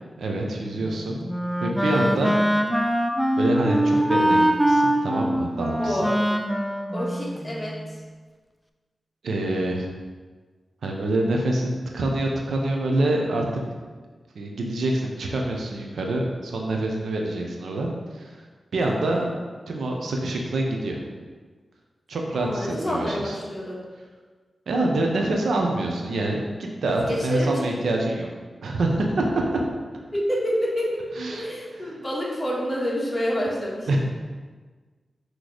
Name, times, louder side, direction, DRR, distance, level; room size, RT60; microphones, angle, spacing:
voice 1, 0.2-1.3 1.6-2.3 3.4-6.0 9.2-9.9 10.8-13.5 14.3-17.9 18.1-18.4 18.7-19.3 19.7-21.0 22.1-23.3 24.7-28.3 28.6-29.6 31.2-31.5 31.8-32.0 33.9-34.0, right 2 dB, 85° right, 0 dB, 0.9 m, -26 dB
Wind instrument woodwind instrument, 0.8-7.9, right 1 dB, 5° right, 0.6 m, -23 dB
voice 2, 5.8-6.2 6.9-8.0 18.9-19.3 22.3-23.8 27.1-28.0 30.1-31.0 31.3-34.0, equal, 20° left, -6 dB, 1.9 m, -28 dB
6.5 x 3.2 x 5.0 m, 1.4 s
cardioid pair, 50°, 0 cm